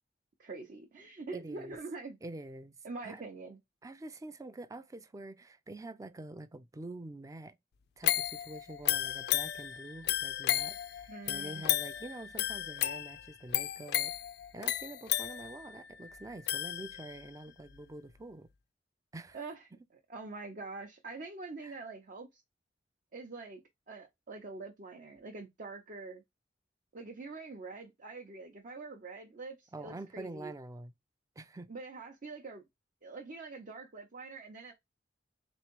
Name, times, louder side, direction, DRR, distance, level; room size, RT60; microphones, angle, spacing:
voice 1, 0.4-2.2 2.8-3.6 11.1-11.6 19.3-19.7 20.1-22.4 23.1-23.6 23.9-26.2 26.9-30.5 31.7-32.6 33.0-34.7, right 3 dB, 50° right, 0.7 m, -45 dB
voice 2, 1.3-1.8 2.2-2.7 3.0-3.2 3.8-7.5 8.0-14.2 14.5-18.5 19.1-19.4 21.6-21.8 29.7-30.9 31.4-31.7, right 2 dB, 20° right, 0.4 m, -46 dB
sound 1, 8.0-17.3 17.8-17.9, left 13 dB, 65° left, 0.4 m, -34 dB
3.5 x 3.1 x 2.9 m
head